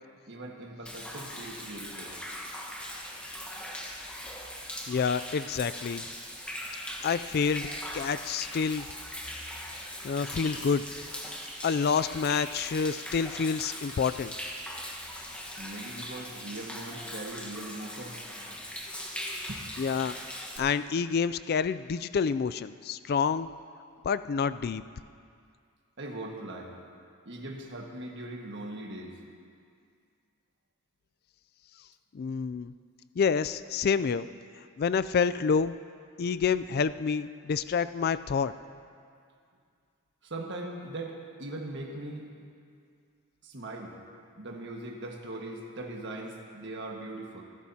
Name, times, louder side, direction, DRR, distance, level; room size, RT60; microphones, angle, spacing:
voice 1, 0.3-2.2 15.6-18.2 19.5-19.7 26.0-26.7 27.2-29.2 40.2-42.3 43.4-43.9 44.4-47.4, right 2 dB, 55° right, 0 dB, 1.6 m, -40 dB
Human voice / Rain / Stream, 0.9-20.6, equal, 5° left, 1.2 m, -40 dB
voice 2, 4.9-6.0 7.0-7.7 7.9-8.9 10.0-10.8 11.6-14.3 19.8-23.5 24.0-24.8 32.1-32.7 33.2-34.3 34.8-35.7 36.2-38.5, left 6 dB, 45° left, 13 dB, 0.3 m, -28 dB
26.0 x 12.0 x 2.8 m, 2.3 s
head